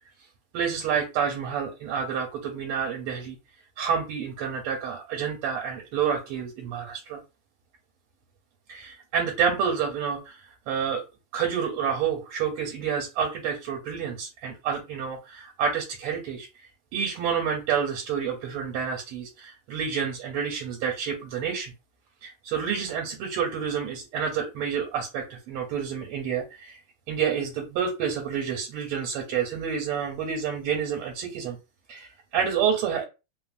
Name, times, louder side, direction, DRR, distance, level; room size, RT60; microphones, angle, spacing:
voice 1, 0.5-3.4 3.8-7.2 8.7-10.4 10.7-11.0 11.3-16.5 16.9-21.7 22.2-26.8 27.1-31.6 31.9-33.1, right 7 dB, 85° right, 1 dB, 1.5 m, -29 dB
3.5 x 2.0 x 2.4 m, 0.28 s
omnidirectional pair, 2.4 m